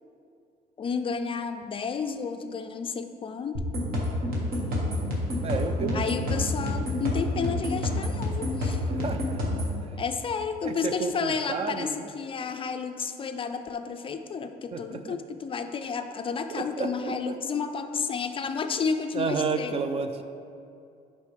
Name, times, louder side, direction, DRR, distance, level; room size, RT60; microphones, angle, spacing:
voice 1, 0.8-3.6 5.9-8.8 10.0-19.8, left 5 dB, 30° left, 7 dB, 0.3 m, -31 dB
sound 1, 3.5-9.7, left 1 dB, 60° right, 1.6 m, -28 dB
voice 2, 5.4-6.1 8.9-9.6 10.6-12.1 14.7-15.2 16.5-17.4 19.1-20.2, right 4 dB, 35° right, 9 dB, 0.4 m, -31 dB
8.1 x 5.3 x 3.3 m, 2.5 s
cardioid pair, 110°, 17 cm